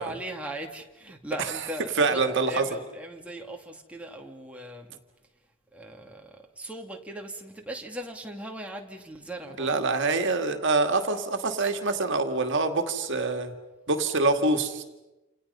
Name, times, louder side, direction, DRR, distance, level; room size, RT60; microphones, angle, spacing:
voice 1, 0.0-2.2 2.5-5.0 5.7-9.8, right 1 dB, 5° right, 1 dB, 2.3 m, -39 dB
voice 2, 2.0-2.6 9.6-13.5 13.9-14.8, right 3 dB, 60° right, 6 dB, 2.2 m, -25 dB
29.0 x 28.0 x 5.6 m, 1.0 s
head